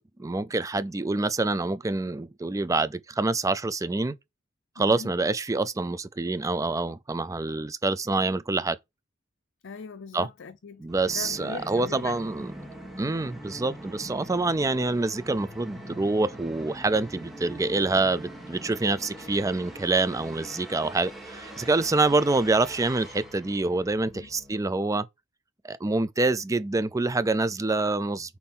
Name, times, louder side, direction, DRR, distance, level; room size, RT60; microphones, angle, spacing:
voice 1, 0.0-4.2 4.8-8.8 10.1-10.3 10.8-12.5 13.0-25.1 25.6-28.4, right 3 dB, 15° right, 0.4 m, -26 dB
voice 2, 4.8-5.1 9.6-12.2 24.1-24.3, left 5 dB, 65° left, 0.5 m, -41 dB
Musical instrument, 10.9-24.6, right 1 dB, ahead, 1.9 m, -43 dB
4.3 x 4.2 x 5.4 m
head